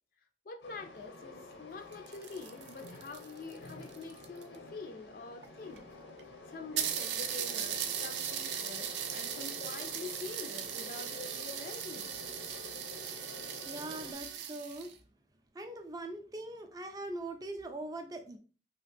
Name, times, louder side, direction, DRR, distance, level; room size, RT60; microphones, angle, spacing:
voice 1, 0.5-5.9 6.5-12.1 12.5-12.6, left 3 dB, 50° left, 0.4 m, -46 dB
Train, 0.6-14.1, left 3 dB, 85° left, 0.7 m, -49 dB
sound 1, 1.8-4.6 5.4-5.5 5.8-5.9 6.2-6.3 6.8-14.9, right 9 dB, 80° right, 0.4 m, -38 dB
voice 2, 13.6-14.9 15.5-18.4, right 2 dB, 20° right, 0.4 m, -41 dB
2.9 x 2.4 x 3.3 m
head